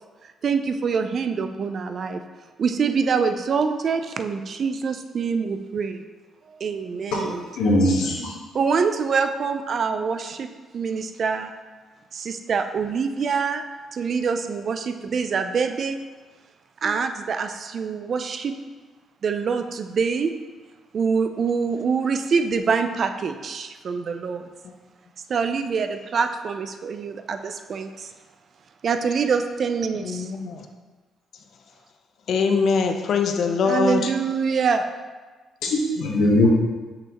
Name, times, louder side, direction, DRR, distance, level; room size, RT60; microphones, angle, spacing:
voice 1, 0.4-2.2 2.6-6.0 6.6-7.5 8.5-10.5 10.7-11.5 12.1-13.6 13.9-16.0 16.8-18.6 19.2-20.3 20.9-24.5 25.3-28.1 28.8-30.3 33.6-34.9, right 5 dB, 55° right, 7 dB, 0.4 m, -25 dB
voice 2, 7.1-8.3 35.6-36.5, left 1 dB, 85° left, -2 dB, 1.3 m, -21 dB
voice 3, 30.0-30.5 32.3-34.1, left 5 dB, 65° left, 5 dB, 0.6 m, -22 dB
5.9 x 5.6 x 3.0 m, 1.3 s
cardioid pair, 90°, 0 cm